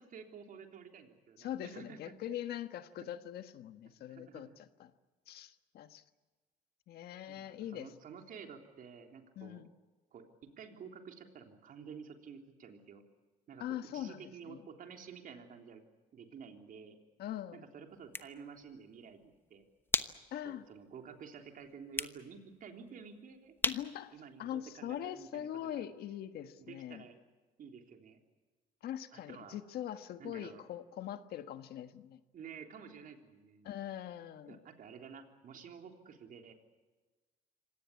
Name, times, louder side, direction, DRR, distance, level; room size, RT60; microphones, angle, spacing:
voice 1, 0.0-2.0 4.0-4.6 7.3-9.6 10.1-10.2 10.6-13.0 13.5-13.6 13.9-15.8 16.1-17.0 17.5-19.7 20.4-23.5 24.1-25.8 26.6-27.2 27.6-28.2 29.1-29.6 30.2-30.6 32.3-33.7 34.5-36.5, right 6 dB, 55° right, 4 dB, 3.5 m, -51 dB
voice 2, 1.4-4.9 5.3-6.0 6.9-7.9 9.4-9.7 13.6-14.6 17.2-17.6 20.3-20.7 23.6-24.1 24.4-27.1 28.8-32.2 33.6-34.6, left 11 dB, 70° left, 10 dB, 1.5 m, -42 dB
sound 1, 17.9-25.3, left 2 dB, 10° left, 1.1 m, -41 dB
26.0 x 18.0 x 8.6 m, 1.3 s
cardioid pair, 110°, 17 cm